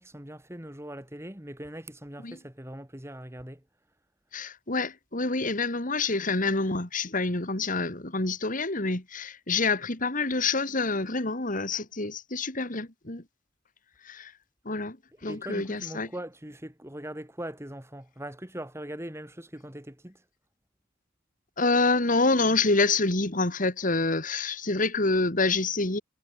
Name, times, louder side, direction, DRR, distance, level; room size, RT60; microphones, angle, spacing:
voice 1, 0.0-3.6 15.2-20.2, right 1 dB, 15° right, 2.9 m, -41 dB
voice 2, 4.3-13.2 14.0-14.3 14.7-15.0 15.2-16.1 21.6-26.0, left 3 dB, 40° left, 2.5 m, -27 dB
head